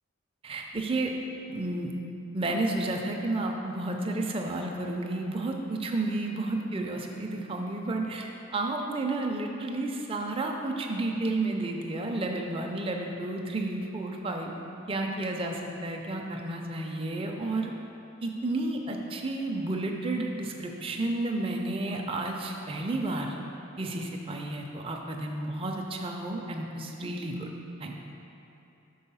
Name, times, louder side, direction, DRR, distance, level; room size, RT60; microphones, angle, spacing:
voice 1, 0.4-1.1 1.5-1.9 2.3-14.5 14.9-17.7 18.2-23.4 23.8-27.5 27.8-27.9, right 2 dB, 25° right, 1 dB, 0.4 m, -31 dB
5.5 x 4.3 x 5.5 m, 3.0 s
head